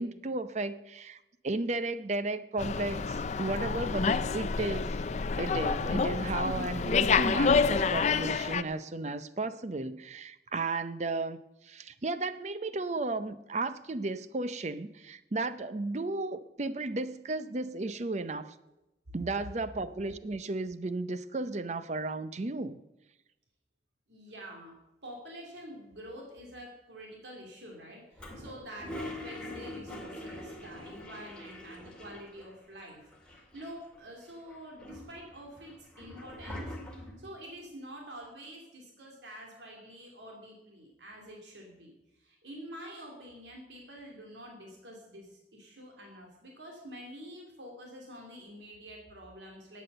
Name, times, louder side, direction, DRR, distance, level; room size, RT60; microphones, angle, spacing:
voice 1, 0.0-4.9 5.4-11.4 11.6-18.6 19.1-22.8, right 2 dB, 40° right, 13 dB, 0.6 m, -34 dB
Slam, 2.6-8.6, left 5 dB, 40° left, 0.4 m, -28 dB
voice 2, 24.1-49.8, equal, 80° right, 0 dB, 2.7 m, -47 dB
Toilet flush, 28.2-32.5 32.8-32.9 33.1-34.0 34.5-37.3, left 1 dB, 5° left, 2.3 m, -43 dB
12.0 x 8.4 x 6.7 m, 0.94 s
head